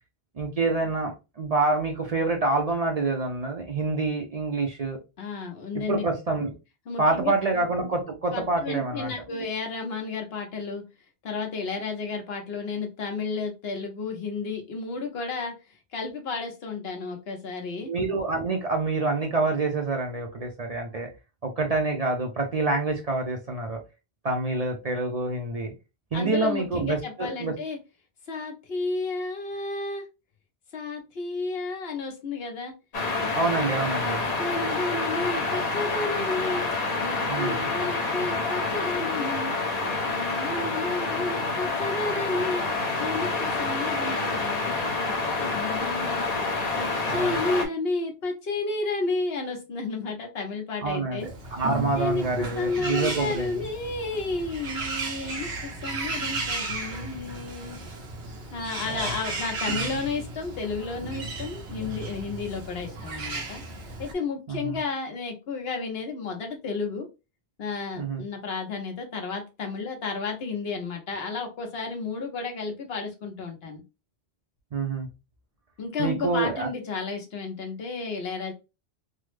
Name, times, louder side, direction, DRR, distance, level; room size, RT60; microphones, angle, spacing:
voice 1, 0.4-5.0 5.7-6.5 7.0-9.4 17.8-21.1 21.4-23.8 24.2-25.7 26.1-27.5 33.3-34.2 37.2-37.7 47.1-47.4 50.8-53.5 58.8-59.2 64.5-64.8 68.0-68.2 74.7-75.1 76.0-76.7, right 3 dB, 50° right, 3 dB, 0.5 m, -27 dB
voice 2, 5.2-6.0 6.9-7.3 8.3-10.8 11.2-15.5 15.9-17.9 26.1-27.8 28.3-30.1 30.7-32.7 33.2-33.4 33.6-33.7 34.0-36.6 37.0-39.5 40.1-42.6 43.0-44.5 44.9-45.1 45.4-46.3 46.8-51.3 52.0-52.2 52.5-57.8 58.5-63.6 64.0-67.1 67.6-73.8 75.8-78.5, left 3 dB, 70° left, 3 dB, 1.1 m, -32 dB
sound 1, 32.9-47.7, left 3 dB, 45° left, 0.7 m, -28 dB
Bird, 51.2-64.1, right 3 dB, 90° right, 1.1 m, -34 dB
3.4 x 2.0 x 3.1 m, 0.27 s
omnidirectional pair, 1.1 m